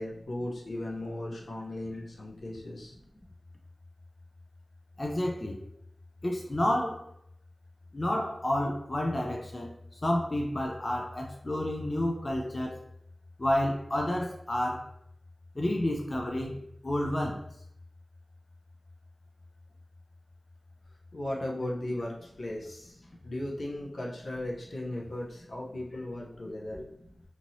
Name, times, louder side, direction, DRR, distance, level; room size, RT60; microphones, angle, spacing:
voice 1, 0.0-3.0 21.1-23.0 23.2-26.9, left 1 dB, 75° left, 0.8 m, -36 dB
voice 2, 5.0-5.6 6.2-7.1 7.9-12.8 13.4-14.9 15.6-16.6 16.8-17.4, left 1 dB, 35° left, 0.4 m, -30 dB
2.8 x 2.8 x 2.7 m
wide cardioid pair, 60°, 0 cm